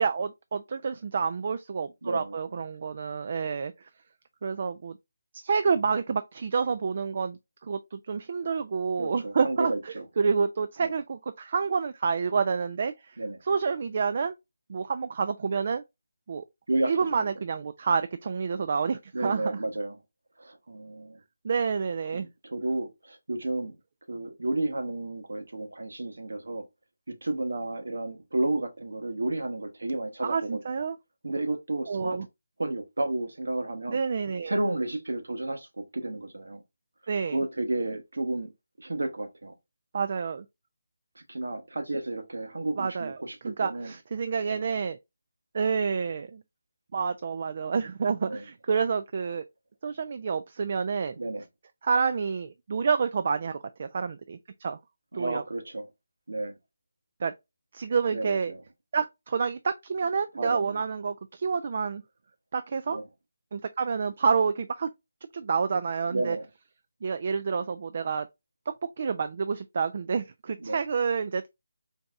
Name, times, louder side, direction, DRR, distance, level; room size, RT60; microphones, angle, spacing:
voice 1, 0.0-3.7 4.4-4.9 5.3-13.2 13.5-14.3 14.7-15.8 16.3-16.4 16.8-19.6 21.4-22.3 30.2-30.9 31.9-32.2 33.9-34.5 37.1-37.4 39.9-40.4 42.8-43.1 43.4-45.0 45.5-46.4 46.9-49.4 49.8-51.2 51.8-54.8 55.1-55.4 57.2-57.3 57.7-58.5 58.9-62.0 62.5-63.0 63.5-64.9 65.3-66.4 67.0-68.3 68.7-71.5, right 5 dB, 40° right, 0.3 m, -28 dB
voice 2, 2.0-2.6 9.0-10.0 10.8-10.9 13.2-13.4 16.7-17.3 19.1-20.0 20.4-21.2 22.1-23.7 24.1-26.6 27.1-30.8 31.2-32.3 32.6-34.0 34.4-36.6 37.3-38.5 38.8-39.5 41.1-43.9 44.4-44.6 48.2-48.4 51.2-51.4 55.1-55.9 56.3-56.6 58.1-58.6 60.4-60.8 62.9-63.0 66.1-66.5 70.6-70.8, right 2 dB, 90° right, 1.1 m, -32 dB
4.0 x 3.4 x 2.4 m
figure-of-eight pair, 170°, 0 cm